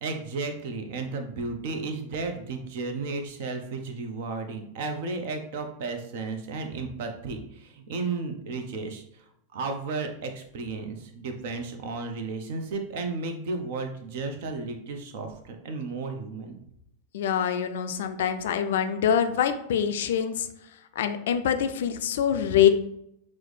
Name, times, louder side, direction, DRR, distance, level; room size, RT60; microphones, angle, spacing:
voice 1, 0.0-9.2 9.5-16.6, right 3 dB, 50° right, 6 dB, 0.6 m, -33 dB
voice 2, 17.1-20.5 21.0-22.7, left 9 dB, 55° left, 8 dB, 0.4 m, -24 dB
6.0 x 2.1 x 3.2 m, 0.77 s
figure-of-eight pair, 90°, 0 cm